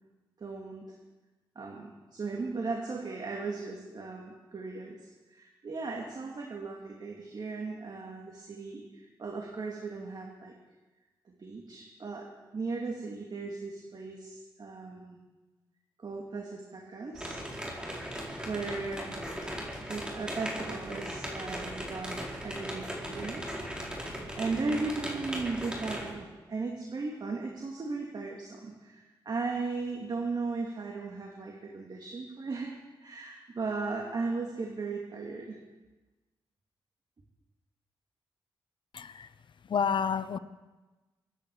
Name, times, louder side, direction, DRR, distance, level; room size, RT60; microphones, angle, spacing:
voice 1, 0.4-0.8 1.6-5.0 5.3-10.5 11.4-15.2 16.0-17.4 18.5-19.3 19.9-23.4 24.3-32.7 33.0-35.6, right 3 dB, 50° right, 0 dB, 2.5 m, -37 dB
sound 1, 17.2-26.1, equal, 10° right, 4.5 m, -38 dB
voice 2, 38.9-39.3 39.7-40.4, left 7 dB, 60° left, 13 dB, 0.9 m, -29 dB
24.5 x 10.0 x 5.0 m, 1.2 s
cardioid pair, 60°, 9 cm